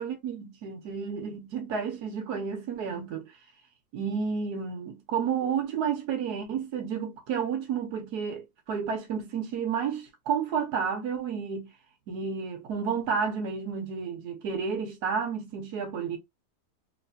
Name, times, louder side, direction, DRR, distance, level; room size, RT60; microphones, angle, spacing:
voice 1, 0.0-3.3 3.9-11.7 12.1-16.2, right 6 dB, 85° right, 1.3 m, -31 dB
3.2 x 2.9 x 2.6 m
omnidirectional pair, 1.6 m